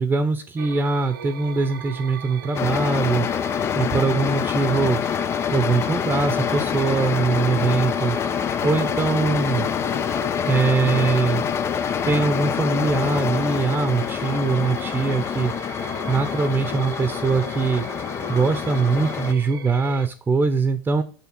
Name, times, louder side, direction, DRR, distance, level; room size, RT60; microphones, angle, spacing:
voice 1, 0.0-3.3 3.7-5.0 5.5-8.2 8.6-9.7 10.5-11.4 12.1-15.5 16.1-17.8 18.3-21.0, right 4 dB, 15° right, 10 dB, 0.7 m, -22 dB
sound 1, 0.6-20.1, right 8 dB, 85° right, 0.8 m, -38 dB
sound 2, 2.5-19.3, left 8 dB, 25° left, 0.3 m, -26 dB
7.2 x 3.2 x 6.2 m, 0.37 s
hypercardioid pair, 110°, 11 cm